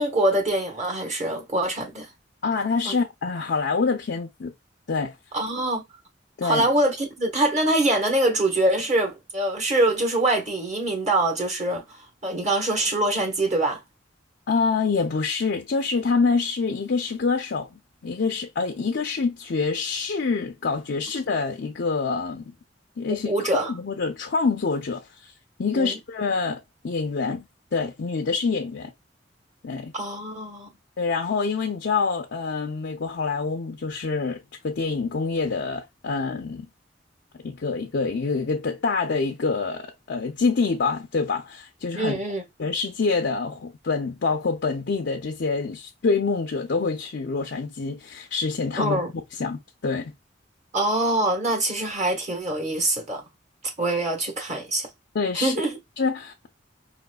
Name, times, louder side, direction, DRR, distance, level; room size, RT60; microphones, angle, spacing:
voice 1, 0.0-2.1 2.8-2.9 5.3-5.8 6.4-13.8 23.2-23.7 25.7-26.0 29.9-30.7 41.9-42.4 48.8-49.1 50.7-53.2 53.8-54.9 55.3-55.8, right 1 dB, 40° right, 1.2 m, -24 dB
voice 2, 2.4-4.5 4.9-5.2 6.4-6.7 14.5-22.5 23.0-23.3 23.6-25.3 25.6-27.4 27.7-28.9 29.6-29.9 31.0-36.7 37.4-42.2 42.6-49.0 49.4-50.1 55.1-55.5 56.0-56.5, left 4 dB, 65° left, 0.5 m, -26 dB
5.0 x 3.0 x 2.2 m
head